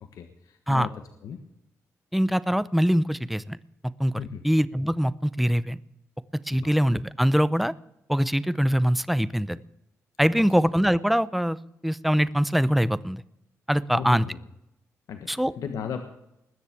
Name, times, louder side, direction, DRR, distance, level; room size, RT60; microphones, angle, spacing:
voice 1, 0.1-0.9 1.2-1.4 4.2-4.5 6.5-6.7 10.4-10.5 13.9-14.4 15.1-16.0, left 7 dB, 85° left, 6 dB, 1.4 m, -36 dB
voice 2, 2.1-3.6 4.0-5.8 6.5-7.7 8.1-9.6 10.2-11.6 11.8-13.2 13.7-14.3 15.3-15.5, equal, ahead, 17 dB, 0.6 m, -23 dB
20.5 x 7.3 x 8.4 m, 0.84 s
cardioid pair, 90°, 6 cm